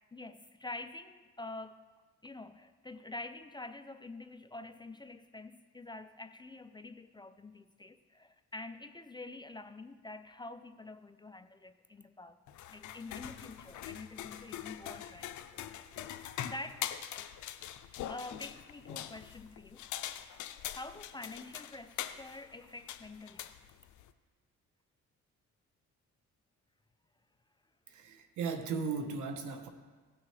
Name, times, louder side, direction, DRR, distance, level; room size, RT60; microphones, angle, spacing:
voice 1, 0.1-1.8 2.2-12.4 12.7-15.3 16.3-17.0 18.1-20.2 20.7-23.7, left 2 dB, 15° left, 10 dB, 0.4 m, -47 dB
sound 1, 12.5-24.1, left 11 dB, 75° left, 0.6 m, -43 dB
voice 2, 27.9-29.7, right 5 dB, 80° right, 7 dB, 1.1 m, -36 dB
16.5 x 6.2 x 3.2 m, 1.4 s
cardioid pair, 90°, 30 cm